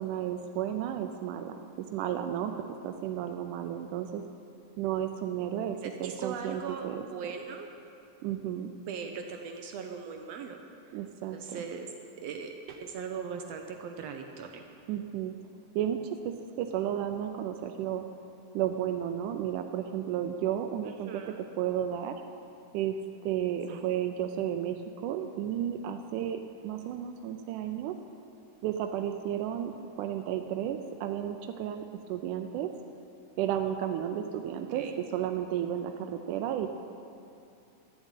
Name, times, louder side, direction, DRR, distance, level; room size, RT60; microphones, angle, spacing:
voice 1, 0.0-4.2 4.8-7.1 8.2-8.7 10.9-11.6 14.9-15.3 15.8-18.1 18.5-22.2 22.7-23.0 23.2-27.9 28.6-32.7 33.4-34.8 35.1-36.7, right 10 dB, 90° right, 6 dB, 2.1 m, -33 dB
voice 2, 5.8-7.7 8.9-10.6 11.3-11.9 12.2-14.7 20.8-21.4 23.7-23.9 34.7-35.0, right 6 dB, 75° right, 4 dB, 1.6 m, -39 dB
12.5 x 7.3 x 9.0 m, 2.6 s
omnidirectional pair, 3.5 m